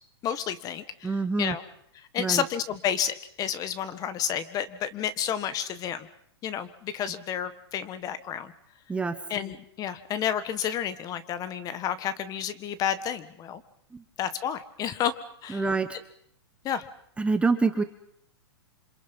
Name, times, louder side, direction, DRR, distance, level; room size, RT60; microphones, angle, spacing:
voice 1, 0.2-1.6 2.1-6.1 6.4-8.5 9.3-13.6 14.2-15.1 15.4-15.6 16.6-16.8, left 9 dB, 25° left, 13 dB, 1.6 m, -30 dB
voice 2, 1.0-1.6 2.2-2.4 8.9-9.2 13.9-14.0 15.5-16.0 17.2-17.8, right 4 dB, 10° right, 9 dB, 1.2 m, -26 dB
28.5 x 26.5 x 5.5 m, 0.66 s
hypercardioid pair, 140°, 14 cm